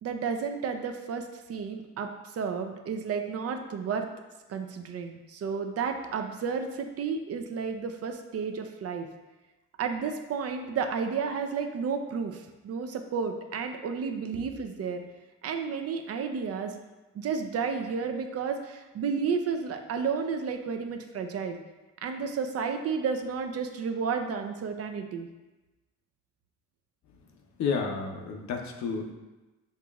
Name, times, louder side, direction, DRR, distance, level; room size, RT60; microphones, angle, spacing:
voice 1, 0.0-4.1 4.5-9.1 9.8-15.0 15.4-16.7 17.1-21.6 22.0-25.3, right 5 dB, 55° right, 6 dB, 0.5 m, -32 dB
voice 2, 27.6-29.1, left 5 dB, 65° left, 2 dB, 0.8 m, -31 dB
6.6 x 2.9 x 2.4 m, 1.1 s
cardioid pair, 90°, 30 cm